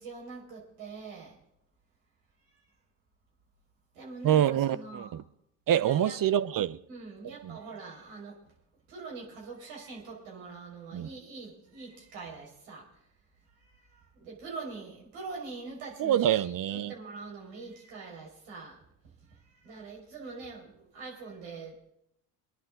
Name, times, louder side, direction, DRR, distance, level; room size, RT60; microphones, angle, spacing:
voice 1, 0.0-1.4 2.5-2.6 3.9-5.2 5.8-6.2 6.9-8.4 8.9-12.9 13.6-18.8 19.2-21.7, right 4 dB, 75° right, -1 dB, 5.5 m, -44 dB
voice 2, 4.2-5.2 5.7-6.8 7.2-7.6 10.9-11.1 16.0-16.9, right 11 dB, 40° right, 15 dB, 1.0 m, -26 dB
23.5 x 10.5 x 3.9 m, 0.76 s
hypercardioid pair, 60°, 49 cm